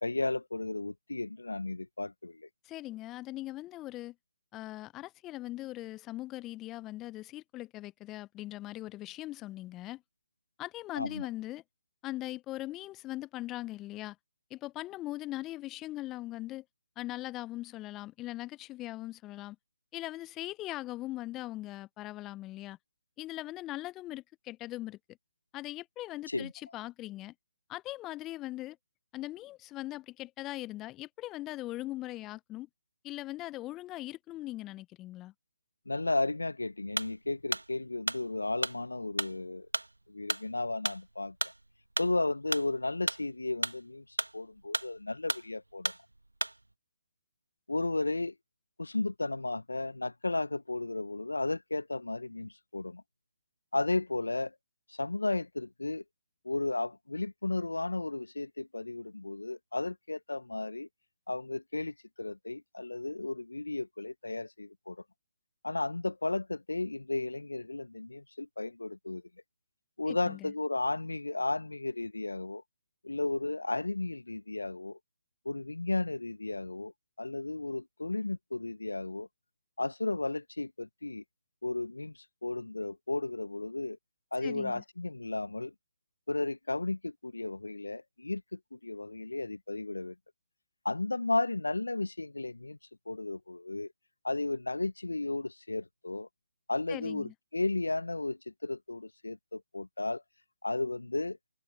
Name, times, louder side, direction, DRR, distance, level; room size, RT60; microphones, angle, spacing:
voice 1, 0.0-2.5 11.0-11.3 26.3-26.5 35.9-39.7 40.1-41.5 42.0-45.9 47.7-48.3 48.8-53.0 53.7-54.5 54.9-56.0 56.4-60.9 61.3-65.0 65.6-69.2 70.0-72.6 73.0-75.0 75.4-76.9 77.2-79.3 79.8-81.2 81.6-84.0 84.3-85.7 86.3-90.1 90.8-92.8 93.1-93.9 94.2-96.3 96.7-100.2 100.6-101.4, left 2 dB, 80° left, 0.8 m, -34 dB
voice 2, 2.6-4.1 4.5-10.0 10.6-11.6 12.0-14.2 14.5-16.6 17.0-19.6 19.9-22.8 23.2-25.0 25.5-27.3 27.7-28.8 29.1-32.7 33.0-35.3 70.1-70.5 84.4-84.8 96.9-97.3, left 16 dB, 20° left, 0.6 m, -40 dB
sound 1, 37.0-46.7, right 2 dB, 85° right, 2.0 m, -35 dB
figure-of-eight pair, 140°, 0 cm